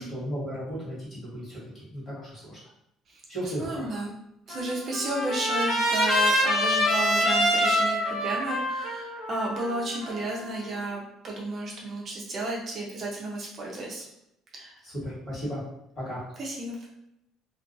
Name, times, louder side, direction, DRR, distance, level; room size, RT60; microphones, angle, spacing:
voice 1, 0.0-1.6 1.9-2.6 3.3-3.9 14.8-15.6 15.9-16.2, equal, 25° left, -8 dB, 1.4 m, -35 dB
voice 2, 3.6-4.1 4.5-14.1 14.5-14.8 16.4-16.9, right 2 dB, 40° right, -2 dB, 0.4 m, -33 dB
Trumpet, 4.5-10.7, equal, 50° left, 1.2 m, -26 dB
2.4 x 2.2 x 2.5 m, 0.83 s
cardioid pair, 145°, 0 cm